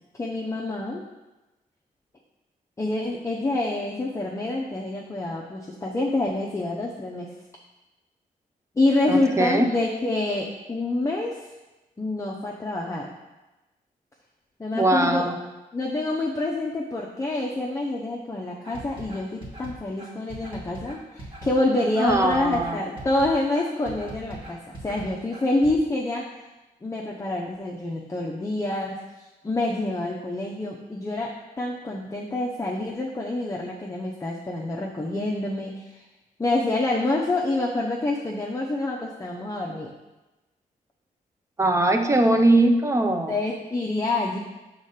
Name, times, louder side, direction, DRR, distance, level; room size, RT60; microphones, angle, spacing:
voice 1, 0.2-1.0 2.8-7.3 8.8-11.4 12.0-13.1 14.6-15.3 15.7-26.2 26.8-29.0 29.4-31.3 31.6-36.0 36.4-39.9 43.3-44.4, left 2 dB, 20° left, -2 dB, 0.6 m, -27 dB
voice 2, 9.1-9.7 14.7-15.4 22.0-22.8 41.6-43.4, right 2 dB, 20° right, 5 dB, 0.6 m, -21 dB
sound 1, 18.6-25.7, right 1 dB, 35° right, 1.6 m, -40 dB
5.1 x 3.7 x 5.7 m, 1.1 s
cardioid pair, 100°, 15 cm